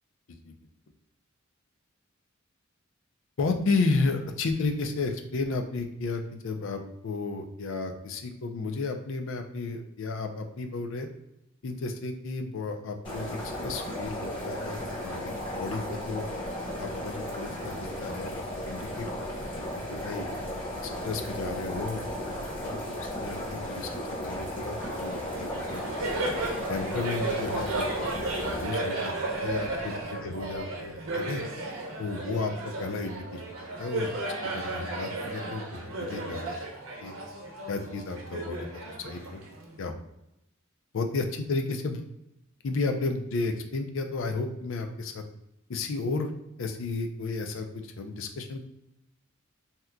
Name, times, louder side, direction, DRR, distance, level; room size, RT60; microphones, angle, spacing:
voice 1, 3.4-11.1 11.6-16.2 16.8-19.1 19.4-20.3 21.0-22.0 22.4-23.9 24.2-25.8 26.7-27.9 28.2-29.1 29.4-31.4 32.0-32.5 32.8-33.4 33.8-34.1 34.4-36.6 37.0-37.1 37.7-39.4 39.8-39.9 40.9-42.1 42.6-45.2 45.7-46.3 46.6-48.7, left 3 dB, 65° left, 5 dB, 0.5 m, -33 dB
sound 1, 13.0-28.6, equal, 25° left, 1.1 m, -35 dB
Laughter, 24.8-39.8, right 2 dB, 75° right, 0.7 m, -34 dB
3.6 x 2.8 x 2.2 m, 0.88 s
head